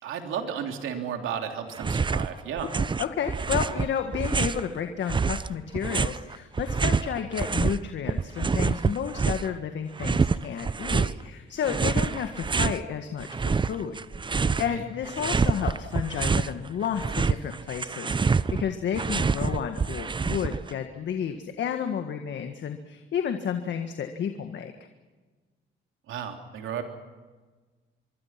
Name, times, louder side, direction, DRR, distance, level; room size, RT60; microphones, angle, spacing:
voice 1, 0.0-2.7 14.4-14.8 26.1-26.8, right 8 dB, 85° right, 4 dB, 3.3 m, -33 dB
sound 1, 1.8-2.3 2.6-4.7 5.1-7.8 8.1-9.5 10.0-11.2 11.6-12.8 13.2-14.7 15.0-16.5 16.8-20.7, right 4 dB, 25° right, 0.7 m, -26 dB
voice 2, 3.0-24.7, left 8 dB, 65° left, 6 dB, 1.7 m, -31 dB
25.0 x 23.5 x 6.0 m, 1.3 s
cardioid pair, 90°, 20 cm